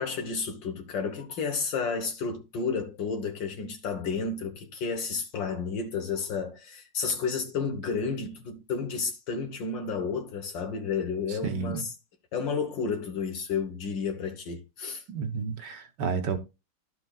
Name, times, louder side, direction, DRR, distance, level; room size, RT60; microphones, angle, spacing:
voice 1, 0.0-11.9 12.3-15.0, left 5 dB, 75° left, 1.9 m, -31 dB
voice 2, 11.3-11.8 15.1-16.4, right 5 dB, 70° right, 1.8 m, -31 dB
12.0 x 6.6 x 2.4 m
omnidirectional pair, 2.0 m